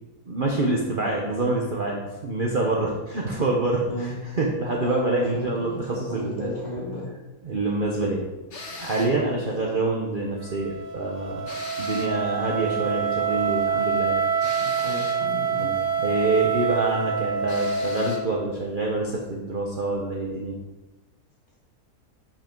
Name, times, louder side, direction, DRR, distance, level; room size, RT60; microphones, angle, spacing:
voice 1, 0.3-6.5 7.4-8.2 8.8-11.5 11.8-14.2 15.6-20.6, right 2 dB, 40° right, -2 dB, 1.0 m, -26 dB
voice 2, 4.8-7.1 14.6-15.7, left 1 dB, 25° left, -7 dB, 3.0 m, -34 dB
sound 1, 8.5-9.2 11.5-12.2 14.4-15.3 17.5-18.3, left 2 dB, 50° left, 1.5 m, -39 dB
Wind instrument woodwind instrument, 10.4-18.4, right 6 dB, 80° right, 1.8 m, -26 dB
7.7 x 5.7 x 4.5 m, 1.1 s
omnidirectional pair, 1.7 m